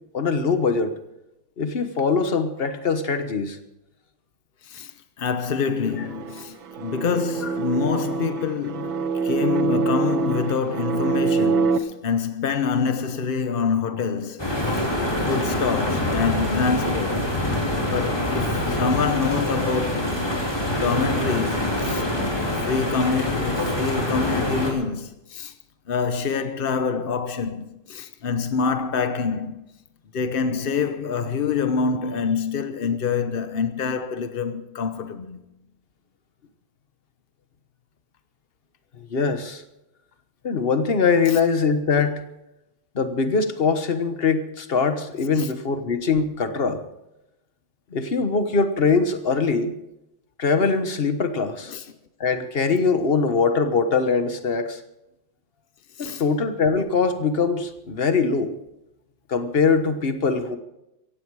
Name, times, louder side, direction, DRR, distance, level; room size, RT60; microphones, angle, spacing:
voice 1, 0.1-0.9 1.6-3.6 39.0-39.6 40.4-42.2 42.9-46.8 47.9-49.7 50.4-51.7 52.2-54.8 56.0-58.5 59.3-60.6, left 4 dB, 35° left, 1.1 m, -22 dB
voice 2, 5.2-15.0 15.3-17.3 17.8-20.2 20.8-22.0 22.6-25.5 25.9-29.6 30.1-35.4 45.3-45.5 51.7-51.8 56.0-56.2, left 5 dB, 70° left, 0.5 m, -26 dB
sound 1, 5.8-11.8, right 5 dB, 75° right, 1.7 m, -25 dB
sound 2, 14.4-24.7, left 1 dB, 10° left, 3.3 m, -25 dB
17.0 x 15.5 x 4.8 m
omnidirectional pair, 2.2 m